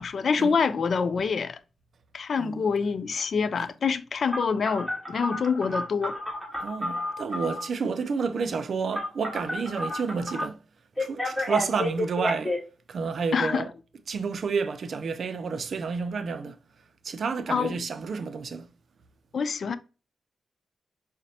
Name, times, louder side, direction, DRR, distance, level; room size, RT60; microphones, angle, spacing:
voice 1, 0.0-1.6 2.1-6.2 13.3-13.7 17.5-17.7 19.3-19.8, left 5 dB, 65° left, 0.3 m, -26 dB
Telephone, 4.3-7.7 8.9-10.5 11.0-12.6, left 1 dB, ahead, 1.8 m, -31 dB
voice 2, 6.6-10.6 11.0-12.6 12.9-13.7 14.1-16.6 17.0-18.7, right 5 dB, 70° right, 0.4 m, -30 dB
4.9 x 2.1 x 2.6 m
cardioid pair, 50°, 0 cm